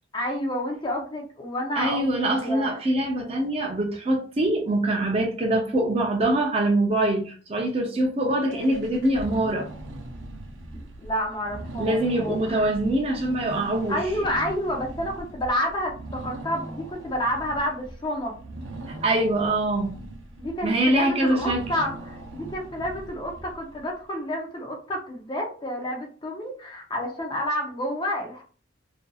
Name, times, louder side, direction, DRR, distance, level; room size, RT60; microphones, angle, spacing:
voice 1, 0.1-2.7 8.5-8.8 11.0-12.7 13.9-18.3 20.4-28.4, equal, 25° left, 0.6 m, -29 dB
voice 2, 1.8-9.7 11.8-14.0 18.9-20.0 20.6-21.6, right 1 dB, 30° right, 0.5 m, -24 dB
sound 1, 8.5-23.9, right 2 dB, 85° right, 0.5 m, -40 dB
2.6 x 2.6 x 2.3 m
head